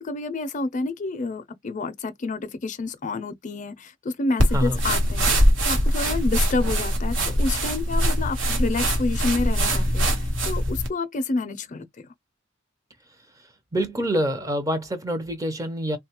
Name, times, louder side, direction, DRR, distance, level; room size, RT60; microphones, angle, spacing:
voice 1, 0.0-5.3 5.6-12.1, left 3 dB, 40° left, 0.5 m, -29 dB
sound 1, 4.4-10.9, equal, 85° right, 1.2 m, -22 dB
voice 2, 13.7-16.0, equal, 20° right, 0.6 m, -26 dB
3.6 x 2.3 x 2.9 m
head